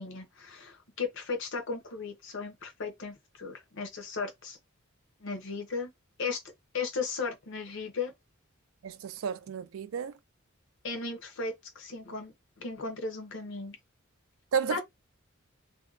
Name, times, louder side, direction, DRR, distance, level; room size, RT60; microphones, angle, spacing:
voice 1, 0.0-4.6 5.2-5.9 6.2-6.4 6.7-8.1 10.8-13.8 14.7-14.8, left 4 dB, 65° left, 0.8 m, -36 dB
voice 2, 8.8-10.1 14.5-14.8, right 6 dB, 70° right, 0.4 m, -32 dB
2.7 x 2.2 x 2.4 m
head